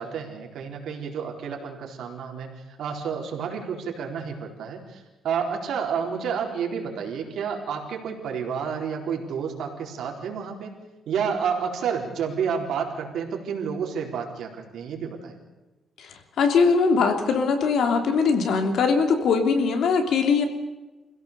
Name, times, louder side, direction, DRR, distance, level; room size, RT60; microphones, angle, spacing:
voice 1, 0.0-2.5 2.8-10.7 11.1-15.3, right 6 dB, 75° right, 1 dB, 4.1 m, -30 dB
voice 2, 16.0-20.5, left 5 dB, 70° left, 6 dB, 3.0 m, -21 dB
25.5 x 16.5 x 6.8 m, 1.1 s
cardioid pair, 150°, 0 cm